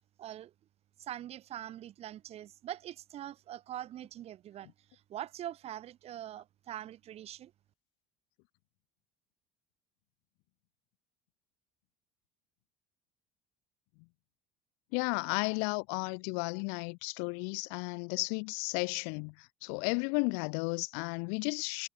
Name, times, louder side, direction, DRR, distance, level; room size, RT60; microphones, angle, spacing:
voice 1, 0.2-0.5 1.0-4.7 5.1-7.5, right 12 dB, 40° right, 0.8 m, -43 dB
voice 2, 14.9-19.3 19.6-21.9, left 40 dB or more, 85° left, 0.6 m, -33 dB
cardioid pair, 140°, 16 cm